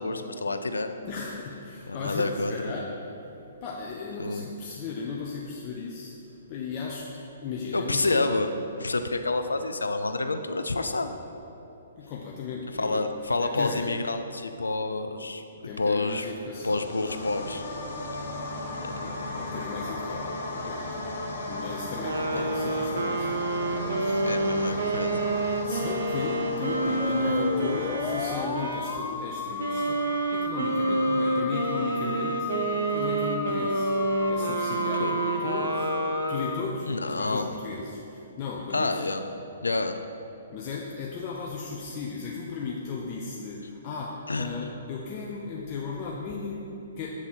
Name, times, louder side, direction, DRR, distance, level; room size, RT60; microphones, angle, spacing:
voice 1, 0.0-0.9 1.9-2.6 4.2-4.4 7.7-8.5 8.8-11.1 12.8-15.4 15.8-16.3 16.6-17.6 18.1-18.3 18.8-18.9 22.3-22.4 24.2-25.2 35.0-35.1 36.8-37.5 38.7-39.2 39.6-40.0 44.3-44.5, left 3 dB, 90° left, 7 dB, 0.4 m, -28 dB
voice 2, 1.1-2.9 3.6-8.3 12.0-13.9 15.5-16.8 19.0-21.1 21.5-25.0 25.5-33.9 34.3-35.9 36.3-39.0 40.5-47.2, left 4 dB, 35° left, -3 dB, 0.7 m, -36 dB
sound 1, 16.5-28.4, left 1 dB, 60° left, 1.2 m, -36 dB
sound 2, 22.0-29.0 29.6-36.8, right 2 dB, 65° right, 0.7 m, -28 dB
sound 3, 27.0-36.6, left 6 dB, 15° left, 0.3 m, -35 dB
7.3 x 3.8 x 6.1 m, 2.9 s
hypercardioid pair, 130°, 0 cm